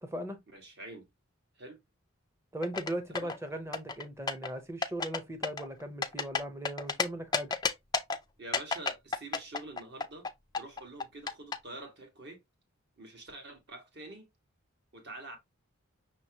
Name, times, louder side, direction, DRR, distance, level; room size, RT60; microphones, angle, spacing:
voice 1, 0.0-0.4 2.5-7.5, right 1 dB, 10° right, 0.7 m, -38 dB
voice 2, 0.5-1.0 1.6-1.8 3.2-3.3 8.4-10.3 10.6-12.4 13.0-14.3 14.9-15.4, right 2 dB, 50° right, 1.5 m, -46 dB
sound 1, 2.6-3.4 3.7-4.5 4.8-5.2 5.4-7.0 7.3-8.2 8.5-11.6, left 5 dB, 20° left, 0.4 m, -31 dB
5.9 x 3.0 x 2.8 m
head